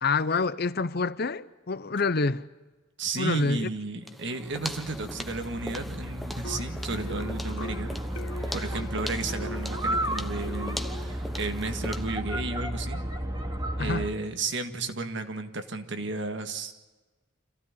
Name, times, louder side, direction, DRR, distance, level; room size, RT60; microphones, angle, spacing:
voice 1, 0.0-2.5 3.2-3.7 13.8-14.1, left 4 dB, 50° left, 0.7 m, -27 dB
voice 2, 3.0-7.9 8.5-13.0 13.8-16.7, right 3 dB, 65° right, 1.9 m, -33 dB
sound 1, 4.0-12.2, equal, ahead, 1.1 m, -40 dB
sound 2, 4.4-14.1, right 1 dB, 20° right, 2.5 m, -33 dB
sound 3, 6.4-11.2, left 2 dB, 90° left, 2.6 m, -42 dB
26.0 x 15.5 x 9.7 m
head